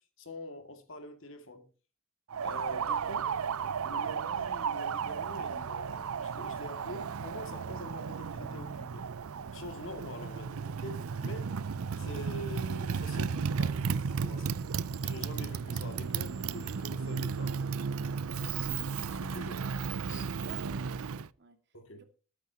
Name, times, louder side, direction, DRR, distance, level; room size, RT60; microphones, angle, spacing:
voice 1, 0.2-1.7 2.4-3.3 3.8-9.0 9.5-11.5 12.0-14.6 15.0-17.5 19.0-19.7 20.0-20.3 21.7-22.0, left 1 dB, 60° left, 2.3 m, -45 dB
Motorcycle, 2.3-21.3, right 6 dB, 75° right, 0.5 m, -34 dB
Bass guitar, 8.3-12.1, right 2 dB, ahead, 5.8 m, -54 dB
voice 2, 20.4-21.6 21.9-22.0, right 3 dB, 50° right, 2.2 m, -54 dB
21.0 x 9.5 x 2.9 m
head